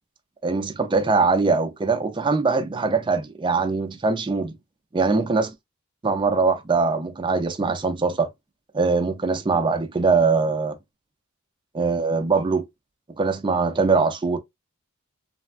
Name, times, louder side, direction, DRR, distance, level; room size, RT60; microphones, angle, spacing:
voice 1, 0.4-4.6 4.9-5.5 6.0-8.3 8.7-10.8 11.7-12.6 13.2-14.4, right 4 dB, 20° right, 0.4 m, -22 dB
3.2 x 2.3 x 2.3 m
head